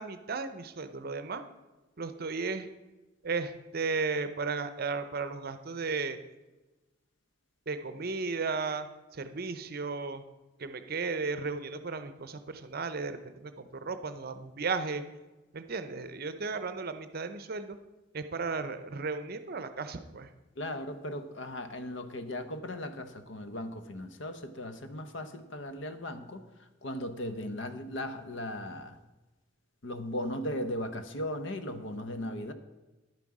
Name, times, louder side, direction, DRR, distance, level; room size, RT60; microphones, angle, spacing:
voice 1, 0.0-1.4 2.0-2.7 3.2-6.2 7.7-8.9 9.1-10.2 10.6-15.0 15.5-17.8 18.1-20.3, right 4 dB, 50° right, 11 dB, 0.7 m, -35 dB
voice 2, 20.6-29.0 29.8-32.5, left 1 dB, 65° left, 9 dB, 0.9 m, -37 dB
10.5 x 9.4 x 4.8 m, 1.1 s
head